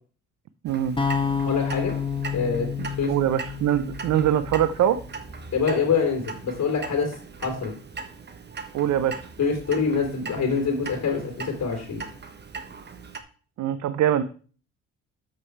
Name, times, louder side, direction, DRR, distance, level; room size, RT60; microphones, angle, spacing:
voice 1, 0.6-1.0 2.8-5.0 8.7-9.2 13.6-14.2, right 10 dB, 70° right, 12 dB, 0.6 m, -23 dB
Clock, 0.7-13.2, right 5 dB, 35° right, 1.2 m, -40 dB
sound 1, 1.0-5.1, left 6 dB, 15° left, 1.0 m, -29 dB
voice 2, 1.4-1.9 2.3-2.7 3.0-3.1 5.5-7.1 7.4-7.7 9.4-12.0, left 5 dB, 60° left, 1 dB, 2.9 m, -25 dB
7.5 x 6.5 x 4.6 m, 0.40 s
cardioid pair, 90°, 30 cm